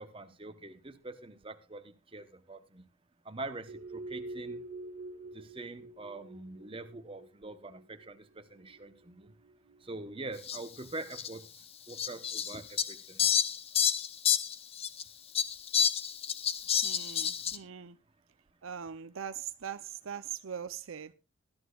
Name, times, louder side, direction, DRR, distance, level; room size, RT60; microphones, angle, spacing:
voice 1, 0.0-2.8 3.2-4.6 5.3-9.3 9.8-13.3, right 2 dB, 25° right, 0.9 m, -44 dB
sound 1, 3.7-9.8, right 2 dB, 85° right, 1.6 m, -46 dB
Fowl, 10.5-10.6 11.1-11.3 12.0-15.0 15.3-17.6, left 8 dB, 25° left, 0.6 m, -29 dB
voice 2, 16.8-18.0 18.6-21.1, right 8 dB, 70° right, 0.5 m, -41 dB
20.0 x 11.5 x 2.4 m
head